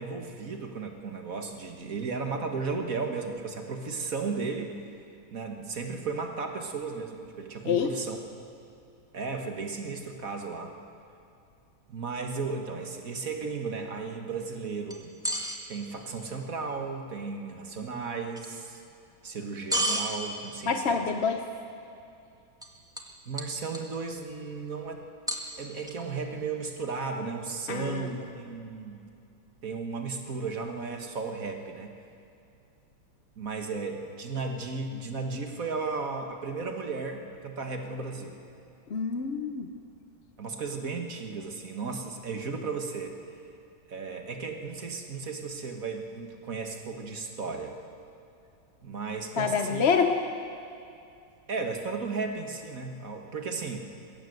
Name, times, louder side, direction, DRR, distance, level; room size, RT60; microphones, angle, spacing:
voice 1, 0.0-4.8 5.3-8.2 9.1-10.7 11.9-15.1 15.7-18.8 19.2-21.0 23.2-25.0 25.6-29.0 29.6-31.9 33.4-38.4 40.4-43.4 43.9-47.8 48.8-49.9 51.5-53.8, right 4 dB, 45° right, 4 dB, 1.7 m, -35 dB
sound 1, 14.9-15.6 18.4-18.5 19.7-20.1 22.6-22.7 23.0-23.1 23.4-24.0 25.3-25.9, right 1 dB, ahead, 1.2 m, -30 dB
voice 2, 20.7-21.4 27.7-28.1 38.9-39.7 49.4-50.2, left 6 dB, 55° left, 6 dB, 0.7 m, -26 dB
21.5 x 16.0 x 7.9 m, 2.5 s
omnidirectional pair, 2.3 m